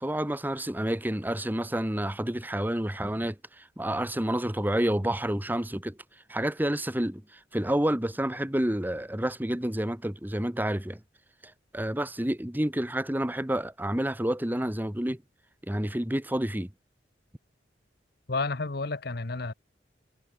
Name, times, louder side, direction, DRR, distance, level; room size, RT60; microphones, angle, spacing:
voice 1, 0.0-6.0 6.3-7.2 7.5-11.0 11.7-15.2 15.7-16.7, right 1 dB, 10° right, 1.2 m, -29 dB
voice 2, 18.3-19.5, left 3 dB, 60° left, 1.2 m, -31 dB
head